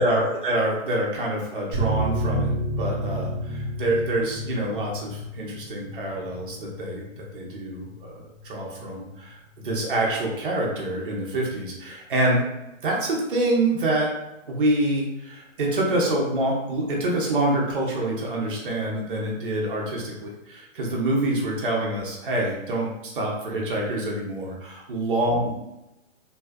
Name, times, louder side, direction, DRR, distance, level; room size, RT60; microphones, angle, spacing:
voice 1, 0.0-2.5 2.8-7.0 7.3-12.4 12.8-14.1 14.5-25.6, right 1 dB, 40° right, -2 dB, 0.7 m, -26 dB
sound 1, 1.7-8.8 9.1-9.2 9.5-9.6, right 1 dB, 10° left, 1.0 m, -31 dB
2.7 x 2.2 x 2.2 m, 0.94 s
hypercardioid pair, 175°, 40 cm